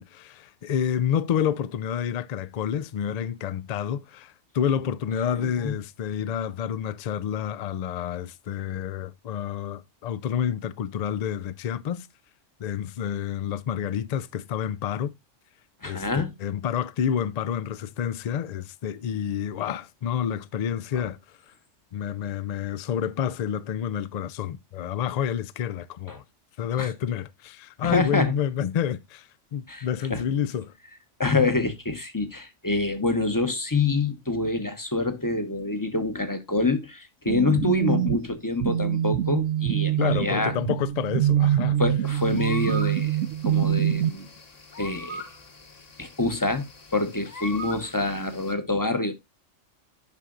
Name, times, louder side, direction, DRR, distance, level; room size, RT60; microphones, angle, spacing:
voice 1, 0.0-12.1 12.6-15.1 15.8-21.2 21.9-26.2 26.6-30.7 40.0-41.8, left 9 dB, 85° left, 0.3 m, -29 dB
voice 2, 5.3-5.7 15.8-16.3 20.9-21.1 26.1-26.2 26.8-26.9 27.8-28.3 29.7-30.2 31.2-40.6 41.8-44.3 44.8-45.3 46.0-46.6 46.9-49.1, left 3 dB, 20° left, 0.8 m, -26 dB
sound 1, 37.3-44.1, right 11 dB, 80° right, 0.9 m, -24 dB
sound 2, 42.1-48.5, equal, 35° left, 1.2 m, -41 dB
10.5 x 5.6 x 2.4 m
omnidirectional pair, 1.3 m